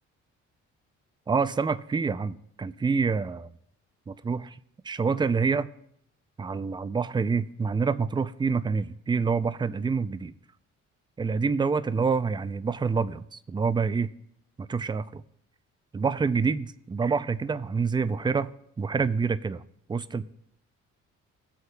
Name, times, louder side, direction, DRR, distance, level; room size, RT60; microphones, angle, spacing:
voice 1, 1.3-3.5 4.1-4.6 4.8-5.7 6.4-10.3 11.2-14.1 14.6-15.2 15.9-19.6 19.9-20.2, right 5 dB, 15° right, 14 dB, 0.4 m, -27 dB
17.5 x 8.0 x 2.3 m, 0.71 s
cardioid pair, 90°, 30 cm